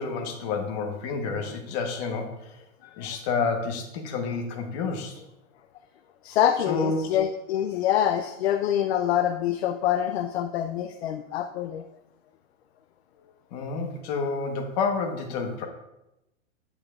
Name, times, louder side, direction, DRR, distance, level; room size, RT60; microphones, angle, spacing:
voice 1, 0.0-2.6 3.0-5.2 6.7-7.0 13.5-15.7, left 4 dB, 35° left, 3 dB, 1.2 m, -29 dB
voice 2, 6.2-11.8, left 10 dB, 55° left, 7 dB, 0.5 m, -25 dB
8.9 x 7.4 x 2.4 m, 0.91 s
supercardioid pair, 160°, 39 cm